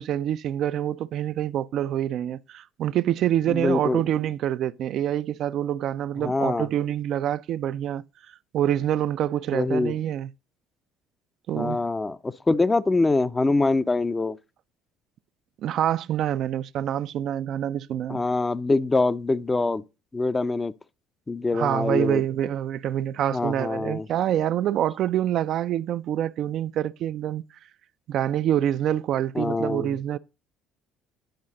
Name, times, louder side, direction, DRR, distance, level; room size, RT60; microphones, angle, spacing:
voice 1, 0.0-8.0 8.5-10.3 11.5-11.8 15.6-18.2 21.5-27.4 28.1-30.2, right 11 dB, 55° right, 0.3 m, -26 dB
voice 2, 3.5-4.0 6.2-6.7 9.5-9.9 11.6-14.4 18.1-19.8 20.1-20.7 21.3-22.2 23.3-24.1 29.3-29.9, left 3 dB, 20° left, 0.5 m, -24 dB
10.5 x 5.5 x 3.8 m
hypercardioid pair, 60°, 0 cm